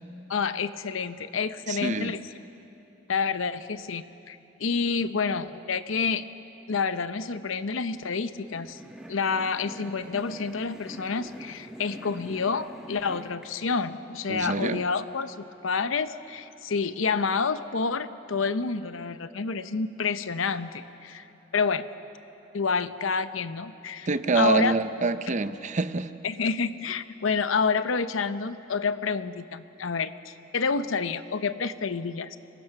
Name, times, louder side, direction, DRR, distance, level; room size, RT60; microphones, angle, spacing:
voice 1, 0.3-2.2 3.1-6.2 6.7-8.8 9.1-21.3 21.5-21.8 22.5-24.1 24.3-24.8 26.2-32.4, left 5 dB, 85° left, 12 dB, 0.8 m, -28 dB
voice 2, 1.7-2.1 14.3-14.8 24.1-26.1, right 3 dB, 40° right, 12 dB, 0.7 m, -26 dB
sound 1, 8.3-13.5, equal, 5° right, 1.4 m, -44 dB
26.0 x 21.0 x 5.9 m, 2.9 s
head